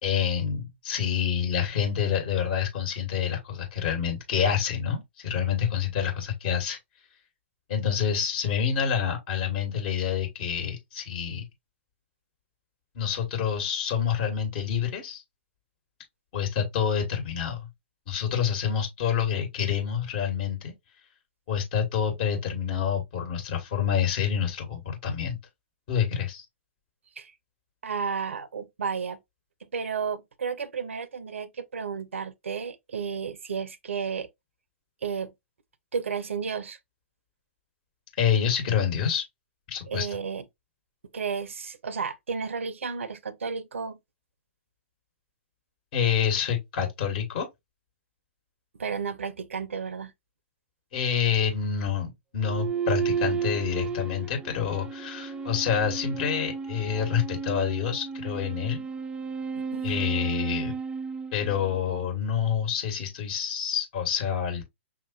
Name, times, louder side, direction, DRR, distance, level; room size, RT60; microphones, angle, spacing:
voice 1, 0.0-6.8 7.7-11.4 12.9-15.2 16.3-17.7 18.1-20.7 21.5-25.4 25.9-26.4 38.2-39.2 39.7-40.1 45.9-47.5 50.9-58.8 59.8-60.8 61.3-64.6, left 8 dB, 50° left, 1.5 m, -27 dB
voice 2, 27.8-29.2 29.7-34.3 35.0-35.3 35.9-36.8 39.9-40.4 41.1-44.0 48.8-50.1 59.7-59.8, right 6 dB, 75° right, 0.6 m, -32 dB
sound 1, 52.4-62.1, right 6 dB, 15° right, 0.4 m, -33 dB
5.9 x 2.9 x 2.5 m
hypercardioid pair, 115°, 7 cm